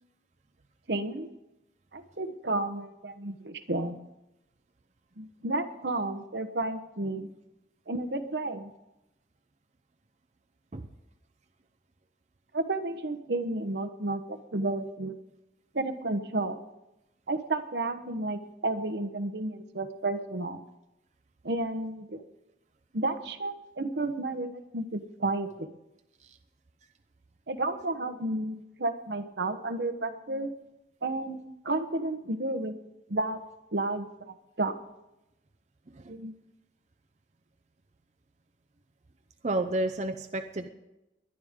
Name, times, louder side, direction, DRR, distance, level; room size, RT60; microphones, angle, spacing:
voice 1, 0.9-1.3 1.9-4.0 5.2-7.3 7.9-8.7 12.5-15.2 15.7-16.6 17.3-20.6 21.4-22.2 22.9-25.7 27.5-30.5 31.0-32.8 33.1-33.4 33.7-34.7 36.1-36.3, right 2 dB, 75° right, 9 dB, 1.1 m, -32 dB
voice 2, 39.4-40.7, right 2 dB, 40° right, 6 dB, 0.7 m, -31 dB
21.0 x 11.0 x 3.7 m, 0.94 s
head